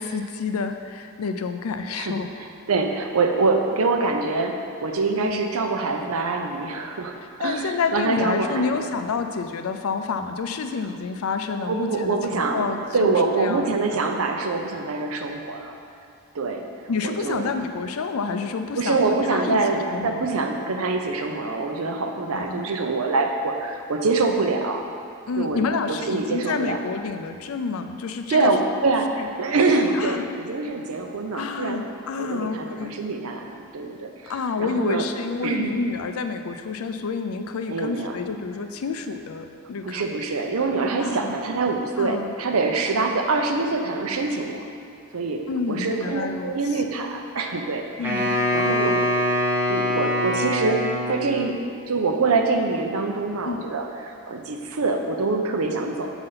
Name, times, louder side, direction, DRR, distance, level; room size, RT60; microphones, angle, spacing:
voice 1, 0.0-2.3 5.1-5.4 7.4-13.7 16.9-19.0 19.3-20.2 22.3-22.7 25.3-28.5 29.2-29.3 29.9-30.2 31.3-32.9 34.3-40.0 41.0-41.4 42.0-42.4 45.5-46.5 48.0-48.4 53.4-53.7, left 4 dB, 80° left, 7 dB, 0.5 m, -29 dB
voice 2, 1.9-8.7 11.7-15.7 16.3-16.7 17.0-17.5 18.7-24.8 25.4-26.8 28.3-31.8 32.2-34.3 34.6-35.1 35.4-35.8 37.7-38.1 39.8-44.6 45.1-48.1 48.5-49.1 49.7-56.1, right 3 dB, 90° right, 4 dB, 0.7 m, -25 dB
Wind instrument woodwind instrument, 48.0-51.5, left 1 dB, 10° right, 0.9 m, -23 dB
6.6 x 4.0 x 5.6 m, 2.4 s
head